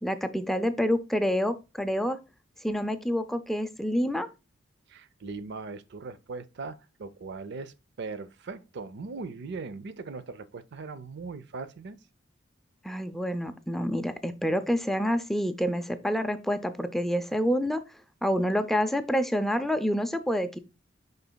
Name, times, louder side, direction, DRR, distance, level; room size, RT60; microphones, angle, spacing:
voice 1, 0.0-2.2 2.6-4.3 12.8-17.8 18.2-20.6, equal, ahead, 0.4 m, -27 dB
voice 2, 4.9-12.0, right 4 dB, 60° right, 0.5 m, -39 dB
10.5 x 3.9 x 2.2 m
head